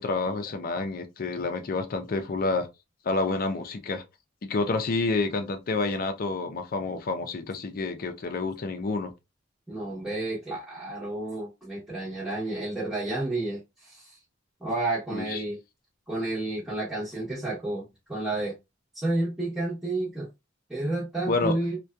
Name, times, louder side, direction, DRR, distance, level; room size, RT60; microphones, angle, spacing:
voice 1, 0.0-2.7 3.0-4.0 4.4-9.1 15.1-15.4 21.3-21.6, left 3 dB, 45° left, 0.5 m, -29 dB
voice 2, 9.7-14.2 14.6-15.6 16.1-17.8 18.1-18.5 18.9-20.3 20.7-21.8, right 2 dB, 5° right, 0.8 m, -30 dB
2.6 x 2.2 x 2.2 m
head